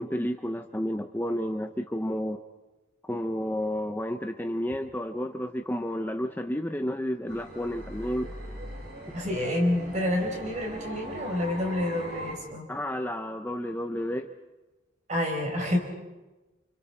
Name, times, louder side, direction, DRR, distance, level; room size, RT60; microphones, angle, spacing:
voice 1, 0.0-2.4 3.0-8.3 12.7-14.3, equal, 10° left, 6 dB, 0.7 m, -31 dB
sound 1, 7.3-12.4, equal, 55° right, 7.3 m, -40 dB
voice 2, 9.1-12.7 15.1-15.8, left 1 dB, 40° right, 2 dB, 4.6 m, -28 dB
29.0 x 28.0 x 4.5 m, 1.1 s
head